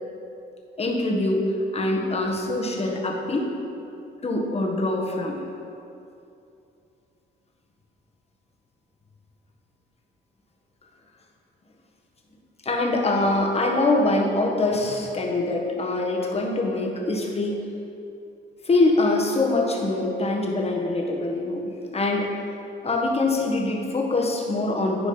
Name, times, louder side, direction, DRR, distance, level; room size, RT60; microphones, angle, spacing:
voice 1, 0.8-1.4 1.7-3.5 4.2-5.4 12.6-17.5 18.6-22.3 22.8-25.1, left 2 dB, 30° left, 0 dB, 1.5 m, -24 dB
10.5 x 4.8 x 5.9 m, 2.7 s
cardioid pair, 90°, 20 cm